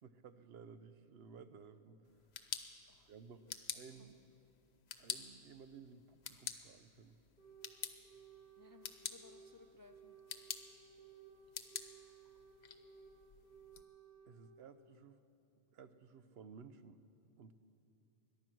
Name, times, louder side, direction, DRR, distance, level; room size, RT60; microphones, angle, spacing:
voice 1, 0.0-2.0 3.1-3.4 3.7-4.2 5.0-7.2 14.2-15.2 15.7-17.0 17.4-17.5, right 6 dB, 70° right, 11 dB, 0.9 m, -56 dB
sound 1, 2.1-13.8, left 7 dB, 80° left, 1.1 m, -49 dB
sound 2, 7.4-7.8 8.0-9.5 9.8-11.4 11.6-13.2 13.4-14.4, right 7 dB, 50° right, 4.1 m, -59 dB
voice 2, 8.6-10.2, left 4 dB, 35° left, 7 dB, 0.3 m, -62 dB
21.5 x 11.0 x 6.1 m, 2.7 s
omnidirectional pair, 1.1 m